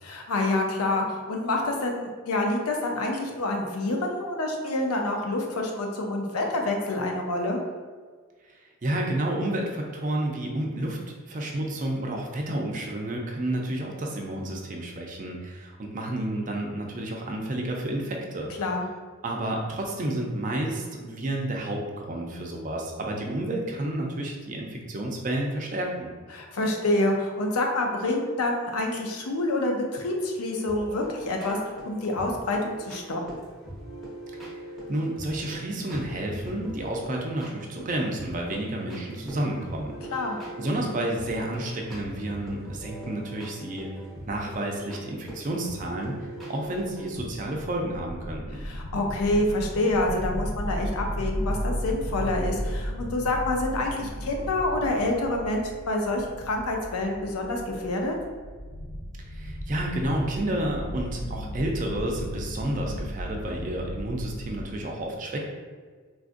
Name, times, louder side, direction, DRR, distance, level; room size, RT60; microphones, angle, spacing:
voice 1, 0.0-7.6 18.6-18.9 26.3-33.2 40.1-40.4 48.6-58.1, left 2 dB, 90° left, 1 dB, 0.5 m, -27 dB
voice 2, 8.8-11.0 11.3-18.5 19.2-26.1 34.9-40.0 40.6-43.9 44.3-48.6 59.3-65.4, right 1 dB, 35° right, 0 dB, 0.4 m, -30 dB
sound 1, 30.7-47.5, right 1 dB, ahead, 0.7 m, -42 dB
sound 2, 46.6-64.7, equal, 50° left, 0.6 m, -35 dB
3.8 x 2.4 x 2.5 m, 1.5 s
head